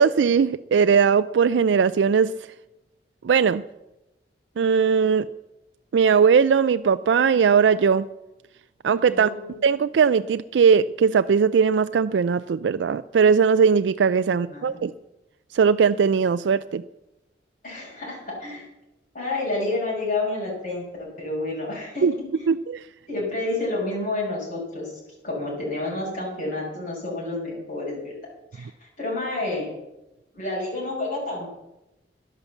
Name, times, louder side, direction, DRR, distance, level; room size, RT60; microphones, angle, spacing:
voice 1, 0.0-2.3 3.2-3.6 4.6-5.3 5.9-8.1 8.8-9.3 9.6-14.9 15.5-16.8 22.0-22.1 22.5-22.8, right 6 dB, 85° right, 12 dB, 0.4 m, -19 dB
voice 2, 9.1-9.5 14.5-14.8 17.6-18.7 19.1-22.3 23.1-24.9 25.2-28.2 28.5-29.7 30.3-31.5, left 2 dB, 50° left, -4 dB, 5.7 m, -29 dB
11.5 x 10.5 x 7.2 m, 0.95 s
head